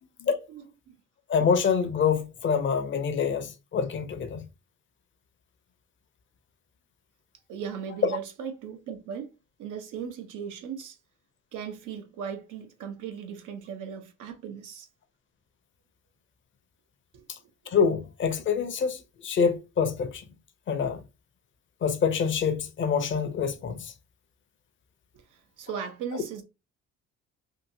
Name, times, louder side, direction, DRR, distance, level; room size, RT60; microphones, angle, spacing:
voice 1, 0.5-1.0 7.5-9.3 9.6-11.0 11.5-14.9 17.1-17.8 25.3-26.4, right 7 dB, 85° right, 0.8 m, -38 dB
voice 2, 1.3-4.5 17.3-17.4 17.7-20.2 20.7-21.0 21.8-23.9, left 6 dB, 40° left, 0.6 m, -26 dB
2.8 x 2.7 x 2.7 m
cardioid pair, 90°, 30 cm